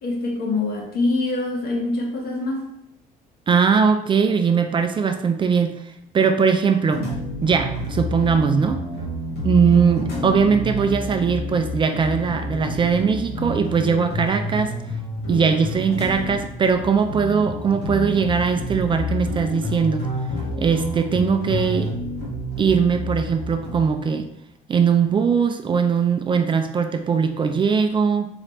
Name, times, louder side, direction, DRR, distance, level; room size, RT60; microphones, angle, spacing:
voice 1, 0.0-2.7, left 2 dB, 65° left, 0 dB, 1.1 m, -24 dB
voice 2, 3.5-5.8 6.1-7.1 7.4-8.8 9.4-14.7 15.3-20.0 20.6-21.9 22.6-24.2 24.7-28.3, right 6 dB, 30° right, 7 dB, 0.3 m, -20 dB
sound 1, 6.9-23.8, left 1 dB, 85° left, 1.3 m, -29 dB
3.9 x 3.2 x 3.1 m, 0.77 s
cardioid pair, 110°, 17 cm